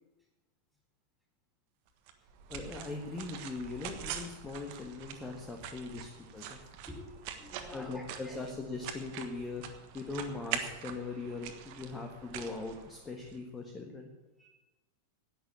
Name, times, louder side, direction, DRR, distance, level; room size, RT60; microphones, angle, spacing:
sound 1, 2.1-13.4, right 9 dB, 45° right, 1.4 m, -44 dB
voice 1, 2.5-6.6 7.7-9.6 9.9-14.1, left 3 dB, 15° left, 3 dB, 1.5 m, -40 dB
voice 2, 6.8-8.4 14.4-14.5, left 1 dB, ahead, -1 dB, 4.7 m, -49 dB
11.0 x 9.2 x 8.7 m, 1.1 s
figure-of-eight pair, 90°, 0 cm